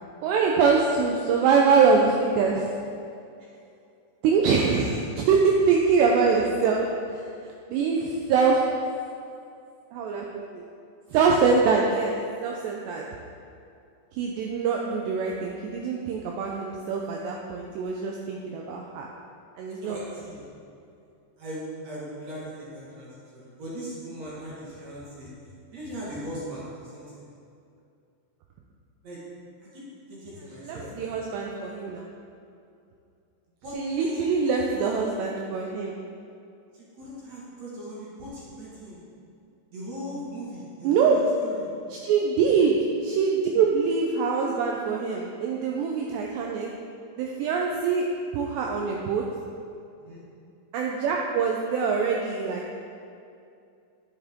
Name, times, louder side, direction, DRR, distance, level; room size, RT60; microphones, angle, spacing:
voice 1, 0.2-2.7 4.2-8.7 9.9-10.6 11.1-12.2 12.4-13.1 14.1-19.1 19.6-20.0 30.6-32.1 33.7-35.9 40.8-41.2 41.9-46.7 47.2-48.1 48.3-49.2 50.7-52.6, right 5 dB, 90° right, 0 dB, 2.4 m, -24 dB
voice 2, 19.8-20.4 21.4-27.3 29.0-29.2 29.7-29.8 30.1-30.9 33.6-34.9 36.7-39.0 39.7-41.7 42.3-42.5 50.0-50.2, equal, 60° right, -7 dB, 1.8 m, -39 dB
11.0 x 10.0 x 3.6 m, 2.5 s
omnidirectional pair, 5.8 m